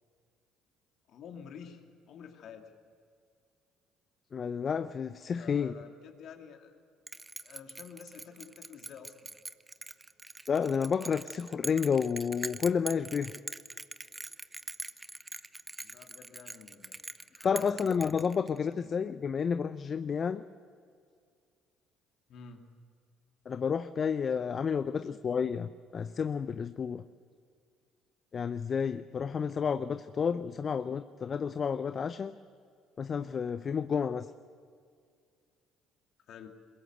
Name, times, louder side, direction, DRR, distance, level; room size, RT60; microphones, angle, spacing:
voice 1, 1.1-2.7 5.3-6.7 7.4-9.3 15.8-17.0 17.3-17.9 18.8-18.9 22.3-22.7 24.9-25.2 36.3-36.5, left 7 dB, 60° left, 4 dB, 2.6 m, -49 dB
voice 2, 4.3-5.7 10.5-13.3 17.4-20.4 23.5-27.0 28.3-32.3 33.0-34.3, left 6 dB, 45° left, 12 dB, 0.7 m, -31 dB
Bell, 7.1-18.7, right 2 dB, 15° right, 0.9 m, -43 dB
22.0 x 21.0 x 8.0 m, 2.2 s
hypercardioid pair, 55°, 0 cm